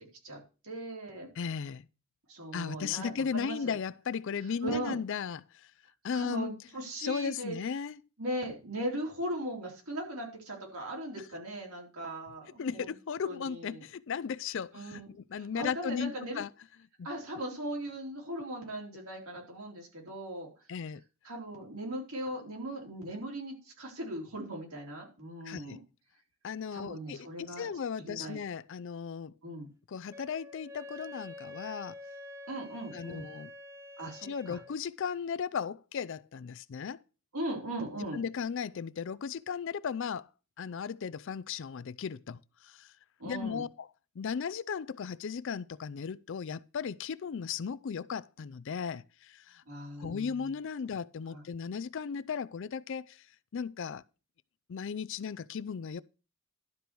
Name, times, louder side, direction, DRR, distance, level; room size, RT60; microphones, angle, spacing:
voice 1, 0.2-1.3 2.3-3.8 4.6-5.0 6.1-7.6 8.2-12.9 13.2-13.8 14.7-15.1 15.4-16.4 17.0-20.5 21.2-25.8 26.7-27.7 28.0-28.4 29.4-29.7 32.5-33.3 34.0-34.6 37.3-38.2 43.2-43.6 49.7-50.5 51.3-51.4, right 1 dB, 75° right, 3.8 m, -39 dB
voice 2, 1.4-1.8 2.5-5.7 6.0-6.5 7.0-8.0 12.6-16.5 17.0-17.1 20.7-21.0 25.4-25.8 26.4-29.3 29.9-31.9 32.9-33.5 34.2-37.0 38.1-40.3 40.6-42.9 43.2-43.9 44.2-49.6 50.0-53.2 53.5-54.0 54.7-56.0, left 6 dB, 55° left, 0.4 m, -36 dB
Wind instrument woodwind instrument, 30.1-34.8, left 2 dB, 15° right, 0.7 m, -47 dB
12.0 x 4.6 x 6.8 m
head